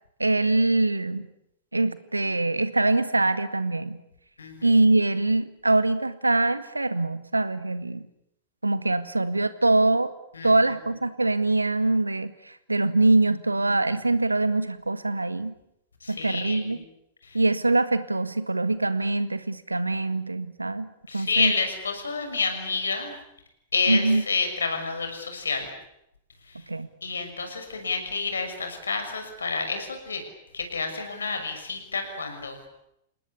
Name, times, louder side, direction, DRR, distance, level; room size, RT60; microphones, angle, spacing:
voice 1, 0.2-1.3 1.7-4.0 4.6-8.0 8.6-10.1 10.4-15.5 16.1-16.8 17.3-20.9 21.1-21.5 23.9-24.2 26.7-26.9, right 2 dB, 80° right, 13 dB, 1.8 m, -23 dB
voice 2, 16.0-16.6 21.1-23.1 23.7-25.7 27.0-30.2 30.5-32.7, left 4 dB, 70° left, 6 dB, 6.4 m, -29 dB
28.5 x 18.5 x 9.9 m, 0.81 s
figure-of-eight pair, 100°, 0 cm